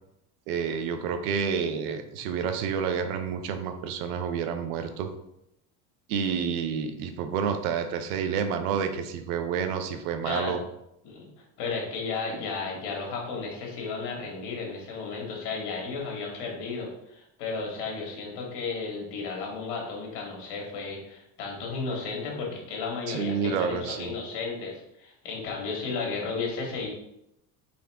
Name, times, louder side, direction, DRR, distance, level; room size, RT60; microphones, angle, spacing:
voice 1, 0.5-5.1 6.1-10.6 23.1-24.1, right 6 dB, 85° right, 8 dB, 0.7 m, -29 dB
voice 2, 10.2-10.6 11.0-11.3 11.6-26.9, left 4 dB, 65° left, -1 dB, 1.6 m, -34 dB
4.0 x 3.4 x 3.4 m, 0.82 s
supercardioid pair, 95°, 44 cm